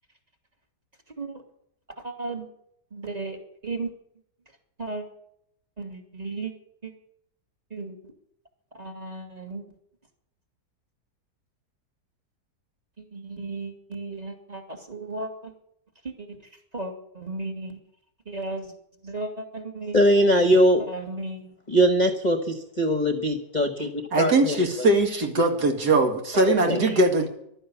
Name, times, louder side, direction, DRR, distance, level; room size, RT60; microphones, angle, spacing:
voice 1, 2.0-2.5 2.9-3.9 4.8-5.0 5.8-6.5 6.8-6.9 7.7-8.1 8.7-9.6 13.0-15.5 16.0-16.4 16.7-17.8 18.3-18.7 19.0-20.0 20.3-20.4 20.8-21.5 26.3-27.0, right 2 dB, 25° right, 3 dB, 2.6 m, -35 dB
voice 2, 19.9-20.8 21.7-23.9 24.2-24.9 26.7-26.8, equal, 30° left, 6 dB, 1.1 m, -21 dB
voice 3, 24.1-27.3, right 2 dB, 70° right, 3 dB, 2.7 m, -21 dB
15.5 x 12.0 x 7.0 m, 0.73 s
omnidirectional pair, 1.8 m